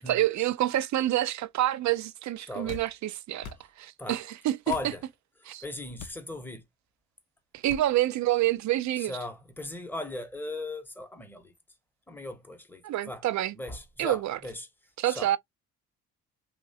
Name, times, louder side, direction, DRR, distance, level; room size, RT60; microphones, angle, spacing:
voice 1, 0.1-3.5 3.8-4.6 5.5-5.6 7.5-9.1 12.8-13.5 14.0-14.4 15.0-15.4, right 14 dB, 45° right, 0.5 m, -27 dB
voice 2, 2.5-2.8 4.0-4.2 4.7-5.0 5.4-6.6 9.0-11.5 12.1-13.2 13.5-14.7 15.0-15.3, left 2 dB, 5° left, 0.9 m, -38 dB
sound 1, 2.6-2.9 3.4-3.6 4.7-4.9 6.0-6.2 7.7-7.9, left 7 dB, 55° left, 0.5 m, -42 dB
3.0 x 2.4 x 2.6 m
hypercardioid pair, 55°, 39 cm